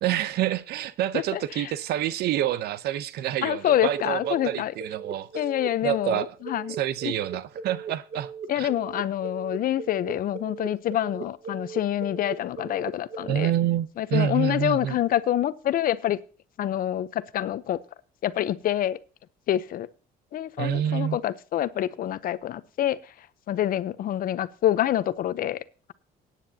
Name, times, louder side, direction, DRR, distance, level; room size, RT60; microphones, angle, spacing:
voice 1, 0.0-5.3 5.8-6.3 6.8-8.3 8.6-8.7 13.3-14.9 20.6-21.2, right 11 dB, 75° right, 0.8 m, -27 dB
voice 2, 1.1-1.7 3.4-4.7 5.3-6.8 7.0-7.1 8.5-13.5 14.0-16.2 16.6-17.8 18.2-19.0 19.5-19.9 20.3-25.6, left 12 dB, 60° left, 0.8 m, -27 dB
sound 1, 3.7-13.5, right 5 dB, 45° right, 1.2 m, -38 dB
18.0 x 9.3 x 2.8 m
cardioid pair, 110°, 17 cm